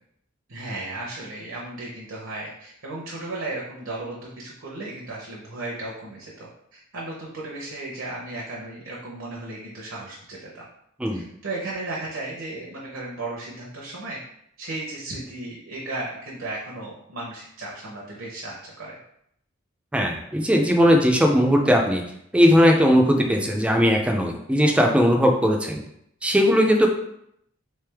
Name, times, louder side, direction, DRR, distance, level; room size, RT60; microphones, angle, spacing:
voice 1, 0.5-10.6 11.1-14.2 14.6-19.0, right 2 dB, 75° right, -4 dB, 0.8 m, -35 dB
voice 2, 19.9-22.0 22.3-25.8 26.2-26.9, equal, 5° right, 2 dB, 0.4 m, -18 dB
3.6 x 3.3 x 3.4 m, 0.75 s
head